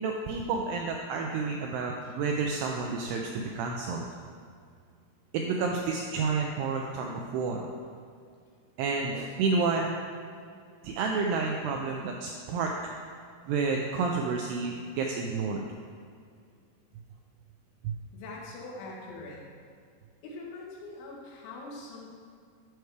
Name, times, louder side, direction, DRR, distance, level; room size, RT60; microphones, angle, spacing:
voice 1, 0.0-4.1 5.3-7.7 8.8-10.0 10.8-12.7 13.5-15.7 17.8-17.9, right 4 dB, 90° right, 1 dB, 2.3 m, -30 dB
voice 2, 18.1-19.5 20.2-22.1, left 2 dB, 90° left, -3 dB, 3.7 m, -43 dB
12.0 x 4.7 x 3.3 m, 2.2 s
omnidirectional pair, 5.3 m